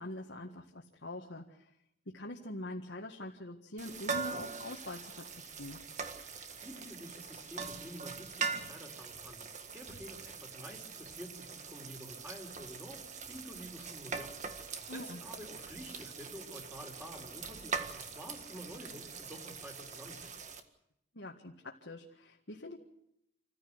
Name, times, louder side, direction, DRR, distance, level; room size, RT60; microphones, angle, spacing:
voice 1, 0.0-1.7 2.1-5.8 14.9-15.2 21.1-22.8, left 1 dB, 70° left, 0 dB, 1.9 m, -44 dB
sound 1, 3.8-20.6, right 5 dB, 40° right, 1.7 m, -42 dB
voice 2, 6.6-9.4 9.7-14.3 14.6-20.3, equal, 10° right, 1 dB, 4.7 m, -49 dB
27.5 x 15.5 x 8.0 m, 0.78 s
head